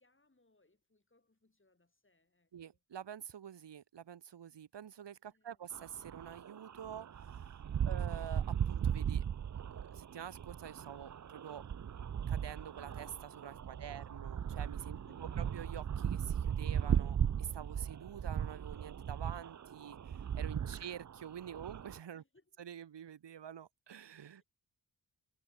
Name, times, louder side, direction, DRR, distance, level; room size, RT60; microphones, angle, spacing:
voice 1, 0.0-2.8 5.2-5.7 7.6-8.1 13.7-14.3 14.9-15.5 22.2-22.6 24.3-24.4, left 2 dB, 30° left, 7.9 m, -72 dB
voice 2, 2.5-7.5 7.8-9.2 9.5-11.6 12.3-22.2 22.6-24.4, right 9 dB, 75° right, 0.9 m, -48 dB
sound 1, 5.7-22.0, right 8 dB, 45° right, 0.5 m, -37 dB
wide cardioid pair, 105°, 43 cm